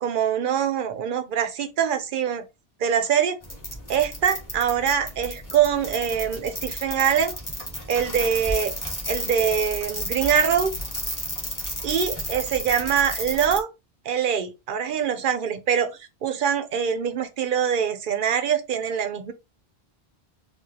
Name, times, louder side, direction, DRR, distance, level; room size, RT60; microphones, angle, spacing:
voice 1, 0.0-2.4 2.8-3.4 3.9-7.3 7.9-8.7 9.1-10.7 11.8-13.7 14.0-19.3, right 8 dB, 60° right, 0.8 m, -24 dB
sound 1, 3.4-13.6, equal, 20° left, 1.2 m, -32 dB
4.8 x 2.4 x 2.8 m
omnidirectional pair, 1.1 m